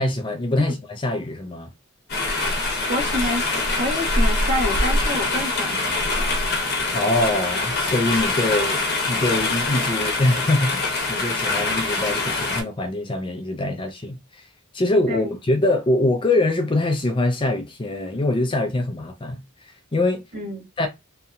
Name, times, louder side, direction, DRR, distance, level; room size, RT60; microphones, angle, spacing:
voice 1, 0.0-1.7 6.9-14.5 14.7-20.2 20.8-20.9, left 2 dB, 20° left, 0.4 m, -23 dB
sound 1, 2.1-12.6, left 2 dB, 45° left, 0.8 m, -24 dB
voice 2, 2.9-3.4 3.8-6.3 15.1-15.3 20.3-20.7, left 1 dB, 50° right, 1.2 m, -28 dB
2.8 x 2.6 x 2.3 m
head